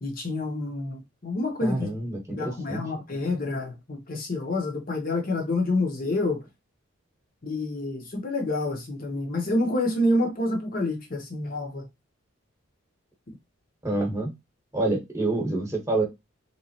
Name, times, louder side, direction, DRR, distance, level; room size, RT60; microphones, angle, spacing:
voice 1, 0.0-1.9 2.3-6.4 7.4-11.8, left 2 dB, 40° left, 0.8 m, -28 dB
voice 2, 1.6-2.8 13.8-14.3 14.7-16.1, right 2 dB, 15° right, 1.0 m, -27 dB
3.2 x 3.1 x 2.8 m
head